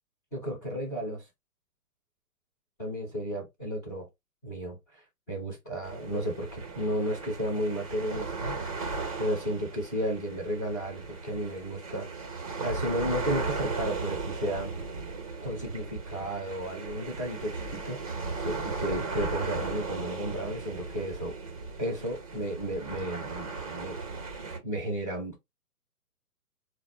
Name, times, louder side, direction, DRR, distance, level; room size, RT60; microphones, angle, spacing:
voice 1, 0.3-1.3 2.8-4.1 4.4-8.6 9.2-12.1 12.6-14.7 15.4-21.3 21.8-24.0 24.6-25.4, equal, 10° left, 0.8 m, -33 dB
sound 1, 5.8-24.6, right 4 dB, 25° right, 0.6 m, -36 dB
4.0 x 2.0 x 3.1 m
figure-of-eight pair, 130°, 45 cm